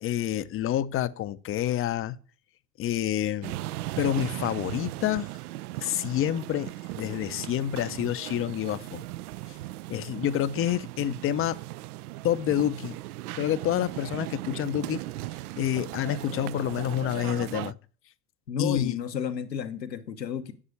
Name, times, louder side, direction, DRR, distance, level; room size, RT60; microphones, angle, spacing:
voice 1, 0.0-2.2 2.8-3.5 4.0-5.3 5.8-9.0 9.9-11.6 12.2-13.0 13.4-15.0 15.6-17.7 18.6-18.9, left 11 dB, 25° left, 0.6 m, -28 dB
sound 1, 3.4-17.7, right 17 dB, 65° right, 0.6 m, -37 dB
voice 2, 18.5-20.5, left 8 dB, 85° left, 1.1 m, -32 dB
8.1 x 7.3 x 8.3 m
figure-of-eight pair, 80°, 49 cm